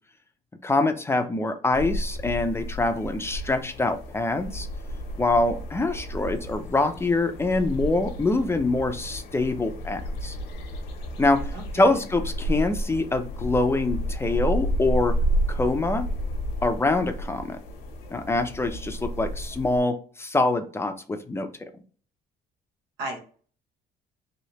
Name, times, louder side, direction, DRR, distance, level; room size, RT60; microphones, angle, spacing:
voice 1, 0.6-4.7 5.2-10.4 11.2-15.2 15.5-16.1 16.6-17.6 18.1-21.7, left 2 dB, 15° left, 7 dB, 0.4 m, -25 dB
sound 1, 1.7-19.8, right 1 dB, 85° left, 0.9 m, -31 dB
voice 2, 11.5-12.0 23.0-23.2, right 2 dB, 90° right, 3 dB, 1.1 m, -34 dB
3.1 x 2.7 x 2.9 m, 0.41 s
cardioid pair, 110°, 17 cm